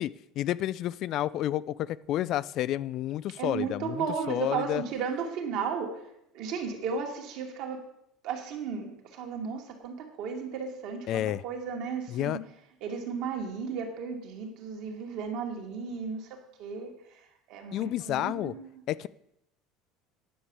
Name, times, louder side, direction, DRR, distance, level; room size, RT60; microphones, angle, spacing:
voice 1, 0.0-4.8 11.1-11.4 12.1-12.4 17.7-18.5 18.9-19.1, left 13 dB, 45° left, 18 dB, 0.3 m, -30 dB
voice 2, 3.4-6.0 6.3-7.8 8.2-12.4 12.8-16.3 16.6-16.9 17.5-18.8, right 6 dB, 60° right, 2 dB, 2.3 m, -34 dB
10.0 x 6.5 x 7.3 m, 0.78 s
cardioid pair, 155°, 0 cm